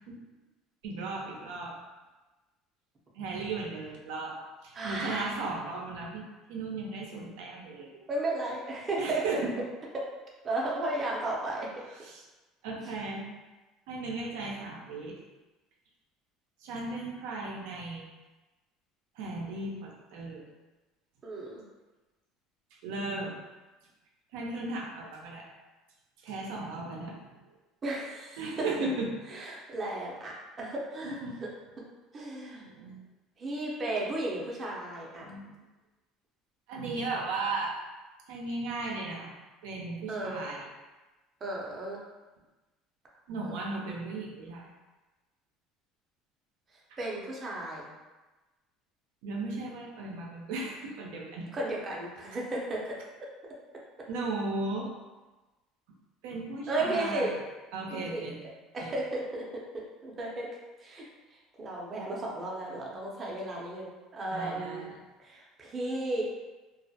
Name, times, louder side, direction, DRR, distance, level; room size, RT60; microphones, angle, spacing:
voice 1, 0.8-1.8 3.2-7.9 9.0-9.5 11.9-12.2 12.6-13.3 13.9-15.2 16.6-18.1 19.2-20.4 22.7-23.4 24.3-25.5 26.2-27.3 28.4-29.1 31.0-31.4 32.7-33.0 35.2-35.6 36.7-37.7 38.3-39.3 39.6-40.7 43.3-44.7 46.9-47.0 49.2-51.5 54.1-54.9 56.2-57.4 57.7-58.4 58.8-58.9 64.3-64.9, right 3 dB, 85° right, -2 dB, 0.4 m, -36 dB
voice 2, 4.7-5.4 7.9-9.2 10.4-11.7 21.2-21.6 27.8-28.4 29.3-31.5 32.1-32.6 33.4-35.3 40.1-40.4 41.4-42.0 47.0-47.9 51.5-53.0 56.7-57.3 57.9-58.3 58.7-59.4 59.7-60.5 60.8-61.0 61.6-64.9 65.2-66.2, right 2 dB, 30° right, -3 dB, 0.5 m, -34 dB
2.2 x 2.1 x 2.7 m, 1.2 s
cardioid pair, 125°, 0 cm